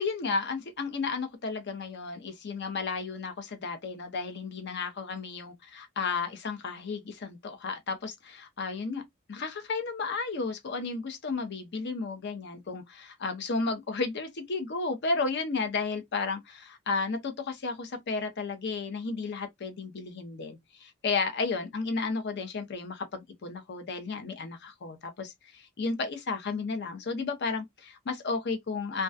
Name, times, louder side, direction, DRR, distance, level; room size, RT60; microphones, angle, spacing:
voice 1, 0.0-9.0 9.3-29.0, left 4 dB, 55° left, 0.6 m, -33 dB
2.2 x 2.2 x 2.5 m
head